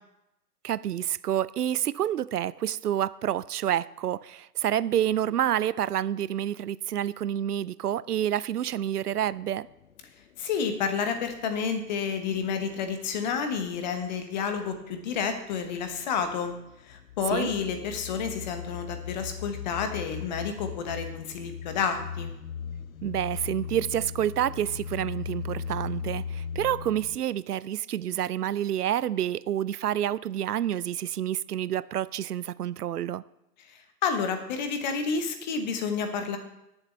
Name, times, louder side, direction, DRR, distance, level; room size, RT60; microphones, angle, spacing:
voice 1, 0.6-9.7 17.3-17.5 23.0-33.2, right 11 dB, 65° right, 0.5 m, -28 dB
sound 1, 9.1-9.4 9.7-12.8 14.7-14.9 15.6-27.2, left 7 dB, 55° left, 0.6 m, -38 dB
voice 2, 10.4-16.5 16.9-22.3 34.0-36.4, left 6 dB, 25° left, 1.0 m, -30 dB
20.0 x 7.3 x 3.2 m
figure-of-eight pair, 125°, 50 cm